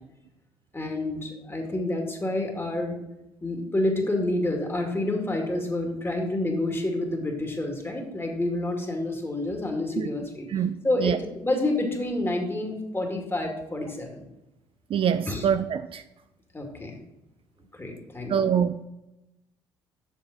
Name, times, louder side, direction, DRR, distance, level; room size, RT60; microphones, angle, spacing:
voice 1, 0.7-3.0 3.4-10.5 10.8-14.2 15.3-15.5 16.5-17.0 17.7-18.5, left 1 dB, 20° left, 2.4 m, -28 dB
voice 2, 14.9-16.0 18.3-18.8, right 8 dB, 45° right, 0.4 m, -24 dB
7.3 x 7.0 x 5.1 m
figure-of-eight pair, 50°, 13 cm